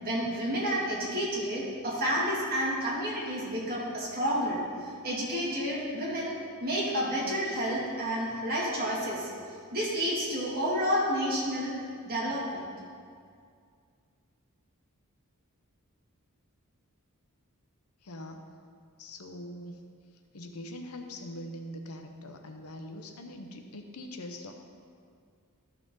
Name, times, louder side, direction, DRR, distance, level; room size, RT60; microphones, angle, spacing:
voice 1, 0.0-4.6 5.0-9.3 9.7-11.7 12.0-12.6, equal, 45° right, -6 dB, 2.5 m, -30 dB
voice 2, 18.0-18.4 19.0-19.8 20.3-24.5, left 1 dB, 80° left, 4 dB, 0.9 m, -42 dB
13.0 x 5.8 x 3.9 m, 2.2 s
head